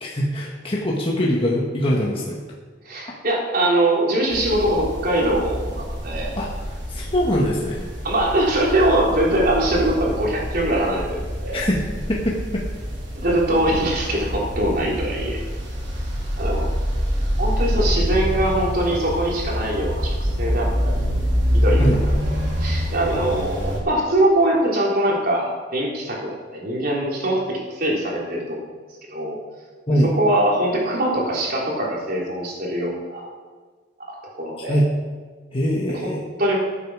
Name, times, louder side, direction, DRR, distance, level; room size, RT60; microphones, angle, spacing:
voice 1, 0.0-2.4 6.3-7.9 11.5-12.6 21.8-22.0 29.9-30.1 34.7-34.9 35.5-36.3, equal, 30° left, -4 dB, 1.6 m, -23 dB
voice 2, 2.8-6.3 8.0-11.6 13.2-15.4 16.4-16.7 17.4-21.2 21.5-21.9 22.2-22.3 22.6-28.6 29.1-29.4 30.1-33.3 34.3-34.8 36.0-36.1 36.4-36.6, right 1 dB, 55° right, -3 dB, 3.6 m, -22 dB
sound 1, 4.3-23.8, equal, 85° right, 3.1 m, -26 dB
14.0 x 8.4 x 4.9 m, 1.4 s
head